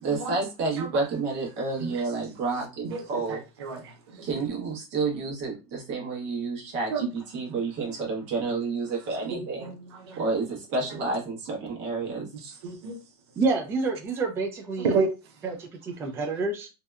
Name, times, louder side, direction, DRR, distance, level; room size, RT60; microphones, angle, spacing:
voice 1, 0.0-3.4 4.2-9.7 10.2-12.3, right 4 dB, 50° right, 1.1 m, -30 dB
voice 2, 2.8-4.3 6.9-7.1 9.3-10.2 12.3-13.0 14.8-15.1, right 4 dB, 90° right, 0.5 m, -31 dB
voice 3, 13.4-14.9 15.4-16.7, right 3 dB, 20° right, 0.3 m, -28 dB
2.7 x 2.1 x 2.3 m
supercardioid pair, 140°, 13 cm